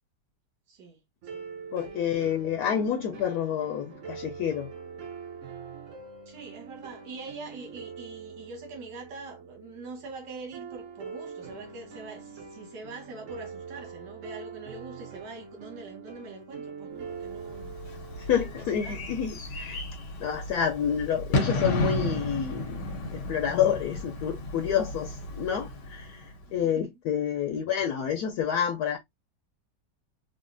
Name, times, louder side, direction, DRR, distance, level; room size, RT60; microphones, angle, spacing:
voice 1, 0.7-1.0 1.2-1.4 1.9-2.0 6.3-17.7 18.2-19.2 26.6-26.9, right 3 dB, 85° right, 1.6 m, -44 dB
sound 1, 1.2-19.2, right 5 dB, 55° right, 1.0 m, -43 dB
voice 2, 1.7-4.7 18.2-19.8 20.2-22.8 23.1-29.0, left 8 dB, 70° left, 1.0 m, -28 dB
Bird / Fireworks, 17.3-26.5, left 2 dB, 85° left, 1.4 m, -33 dB
3.9 x 2.1 x 2.4 m
omnidirectional pair, 1.8 m